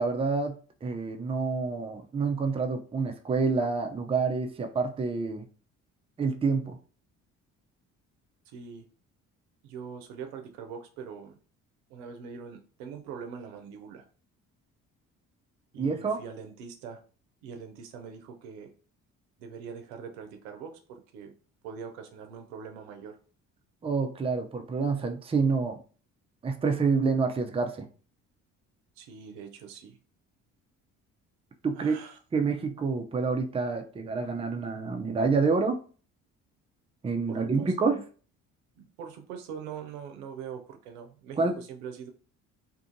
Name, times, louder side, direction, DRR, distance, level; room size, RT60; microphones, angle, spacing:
voice 1, 0.0-5.4 6.2-6.8 15.8-16.2 23.8-25.8 26.4-27.9 31.6-32.0 32.3-35.8 37.0-38.0 41.4-41.6, right 4 dB, 15° right, 5 dB, 0.4 m, -28 dB
voice 2, 8.5-8.9 9.6-11.4 11.9-14.0 15.7-17.0 17.4-18.7 19.4-21.3 21.6-23.2 29.0-30.0 31.7-32.2 37.3-38.0 38.8-42.1, right 6 dB, 80° right, 5 dB, 0.6 m, -42 dB
2.6 x 2.4 x 2.6 m, 0.39 s
hypercardioid pair, 55°, 37 cm